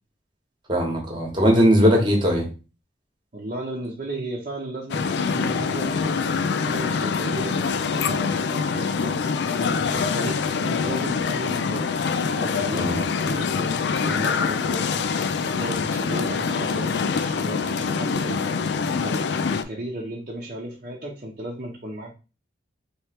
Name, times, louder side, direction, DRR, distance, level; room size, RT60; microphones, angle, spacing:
voice 1, 0.7-2.5 12.7-13.0, equal, 25° right, 0 dB, 1.2 m, -19 dB
voice 2, 3.3-6.3 6.6-9.2 9.8-11.9 12.2-15.0 15.5-18.5 19.0-22.1, right 1 dB, 40° right, -3 dB, 0.9 m, -35 dB
sound 1, 4.9-19.6, left 5 dB, 60° left, 0.3 m, -25 dB
3.2 x 3.1 x 4.4 m, 0.32 s
head